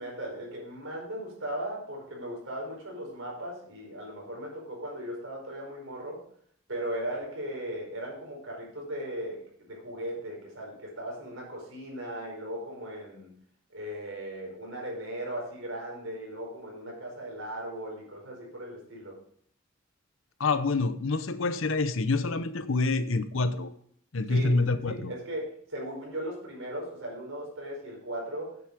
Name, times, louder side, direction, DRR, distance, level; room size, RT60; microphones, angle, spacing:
voice 1, 0.0-6.2 6.7-13.3 13.7-19.2 24.3-28.6, right 1 dB, 65° right, -1 dB, 4.9 m, -37 dB
voice 2, 20.4-23.7 24.1-25.1, left 3 dB, 70° left, 12 dB, 0.8 m, -27 dB
9.3 x 7.9 x 5.1 m, 0.65 s
head